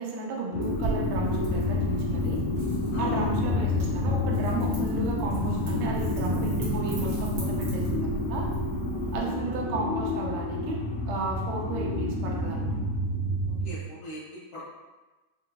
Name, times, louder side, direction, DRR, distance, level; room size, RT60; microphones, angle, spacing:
voice 1, 0.0-2.4 3.0-8.5 9.1-10.8 11.1-12.8, right 3 dB, 80° right, -1 dB, 2.2 m, -33 dB
sound 1, 0.5-13.7, left 2 dB, 90° left, 1.5 m, -29 dB
Wind / Fire, 0.6-9.2, right 3 dB, 50° right, 1.4 m, -35 dB
voice 2, 2.9-3.3 9.0-9.1 13.6-14.7, left 1 dB, 65° left, -9 dB, 1.0 m, -40 dB
5.7 x 2.7 x 2.6 m, 1.2 s
omnidirectional pair, 3.7 m